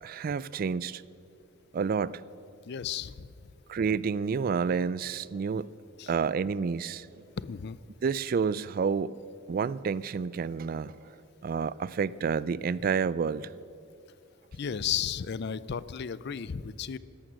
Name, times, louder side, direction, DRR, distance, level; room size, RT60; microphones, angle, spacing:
voice 1, 0.0-1.0 1.7-2.2 3.7-5.7 6.1-7.1 8.0-9.1 9.5-11.2 11.4-13.5, right 5 dB, 45° right, 20 dB, 0.3 m, -29 dB
voice 2, 2.7-3.5 6.0-6.1 7.4-7.8 14.5-17.0, left 8 dB, 55° left, 18 dB, 0.4 m, -34 dB
16.5 x 13.0 x 6.3 m, 2.6 s
head